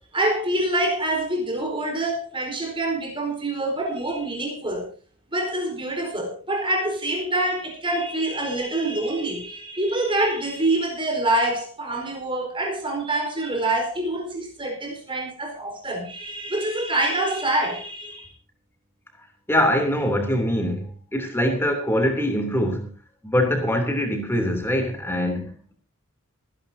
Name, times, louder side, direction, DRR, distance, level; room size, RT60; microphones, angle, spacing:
voice 1, 0.1-4.9 5.3-18.3, right 1 dB, 25° right, 4.5 m, -26 dB
voice 2, 19.5-22.9 23.2-25.7, equal, 10° left, 3.0 m, -23 dB
26.5 x 11.0 x 2.8 m
head